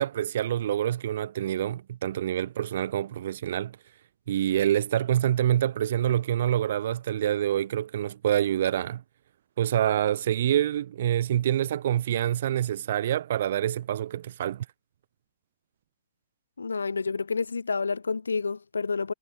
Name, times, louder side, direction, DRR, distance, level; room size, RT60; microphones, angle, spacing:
voice 1, 0.0-3.8 4.3-9.0 9.6-14.7, right 11 dB, 55° right, 0.4 m, -26 dB
voice 2, 16.6-19.1, left 4 dB, 75° left, 0.7 m, -29 dB
figure-of-eight pair, 105°, 0 cm